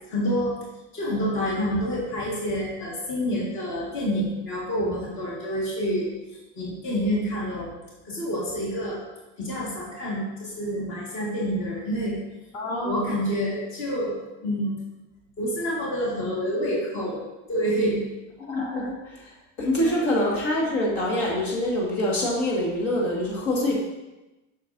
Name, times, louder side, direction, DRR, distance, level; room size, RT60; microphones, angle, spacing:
voice 1, 0.1-0.6 0.9-6.1 6.6-7.7 8.0-9.0 9.4-12.1 12.8-14.7 15.4-17.2 17.5-18.0 19.8-19.9, equal, 35° left, -5 dB, 2.0 m, -27 dB
voice 2, 12.5-13.1 18.4-19.3 19.6-23.8, left 1 dB, 65° left, -4 dB, 2.0 m, -25 dB
8.2 x 6.4 x 2.7 m, 1.0 s
cardioid pair, 175°, 34 cm